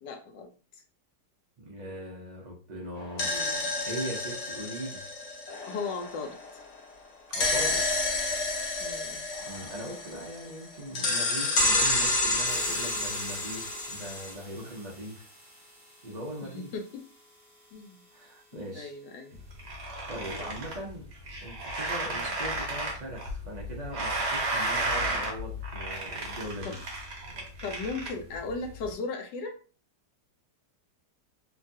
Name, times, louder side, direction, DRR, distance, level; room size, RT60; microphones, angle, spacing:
voice 1, 0.0-0.5 3.2-3.7 5.7-6.4 8.8-9.3 16.5-17.1 17.7-18.0 18.5-19.4 20.2-20.5 22.1-22.3 26.6-26.8 27.6-29.6, left 4 dB, 80° left, 4 dB, 1.2 m, -37 dB
voice 2, 1.6-3.3 3.8-5.0 7.3-7.9 9.4-15.3 16.0-16.7 18.1-18.9 20.1-21.1 21.4-26.8, right 1 dB, 80° right, -3 dB, 0.3 m, -40 dB
sound 1, 3.0-6.6 7.3-10.5 10.9-14.3, left 2 dB, 55° left, 0.9 m, -29 dB
sound 2, 12.5-19.3, equal, 15° right, 0.6 m, -48 dB
sound 3, 19.3-28.9, right 2 dB, 50° right, 0.8 m, -34 dB
3.1 x 2.3 x 2.6 m, 0.38 s
omnidirectional pair, 1.9 m